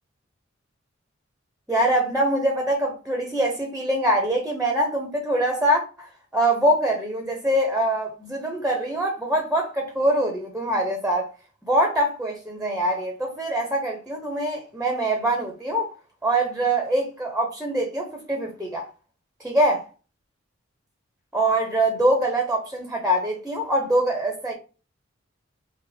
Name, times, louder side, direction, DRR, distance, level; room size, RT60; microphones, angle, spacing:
voice 1, 1.7-11.3 11.7-15.9 16.2-18.9 19.4-19.8 21.3-24.5, right 1 dB, 5° right, 0.8 m, -24 dB
5.9 x 2.1 x 3.4 m
head